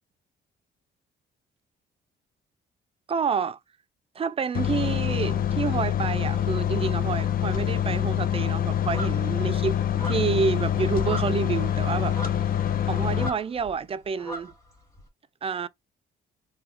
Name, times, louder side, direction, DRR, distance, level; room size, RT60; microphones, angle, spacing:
voice 1, 3.1-3.6 4.2-9.7 10.0-12.2 12.9-14.5 15.4-15.7, right 5 dB, 30° right, 0.4 m, -28 dB
sound 1, 4.5-13.3, left 10 dB, 45° left, 0.5 m, -25 dB
sound 2, 8.8-13.8 14.0-15.0, equal, 15° left, 1.6 m, -39 dB
2.8 x 2.2 x 3.7 m
cardioid pair, 90°, 20 cm